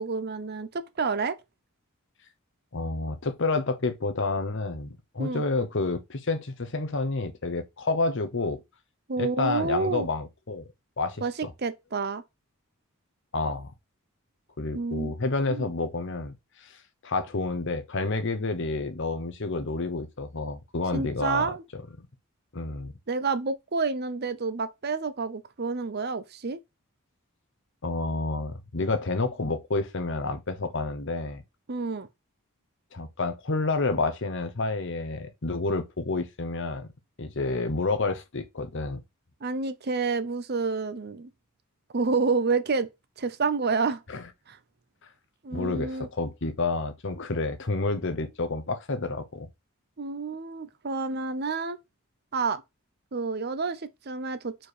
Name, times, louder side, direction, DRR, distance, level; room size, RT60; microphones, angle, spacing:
voice 1, 0.0-1.4 5.2-5.4 9.1-10.1 11.2-12.2 14.7-15.1 15.5-15.7 20.9-21.6 23.1-26.6 31.7-32.1 39.4-41.3 41.9-42.9 43.2-44.0 44.5-44.6 45.4-46.1 50.0-51.8 52.3-52.6 53.1-54.5, right 4 dB, 45° right, 0.7 m, -29 dB
voice 2, 2.7-8.6 9.2-10.6 11.0-11.5 13.3-13.7 14.6-16.3 16.6-16.7 17.0-21.5 22.0-22.1 22.5-22.9 27.8-31.4 32.9-36.9 37.2-39.0 44.1-44.2 45.5-49.5, left 3 dB, 55° left, 0.9 m, -29 dB
4.6 x 4.6 x 4.9 m
head